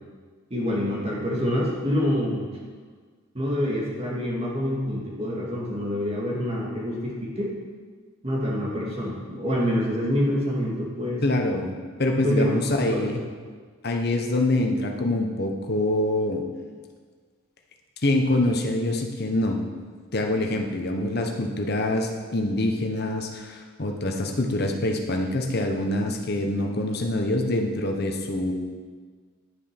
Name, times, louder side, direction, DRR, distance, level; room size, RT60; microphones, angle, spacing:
voice 1, 0.5-2.5 3.3-7.5 8.2-11.2 12.2-13.1, equal, 30° right, -3 dB, 2.3 m, -26 dB
voice 2, 11.2-13.2 13.8-16.4 18.0-19.6 20.1-28.5, left 1 dB, 50° left, 3 dB, 1.2 m, -25 dB
11.0 x 7.2 x 6.0 m, 1.5 s
head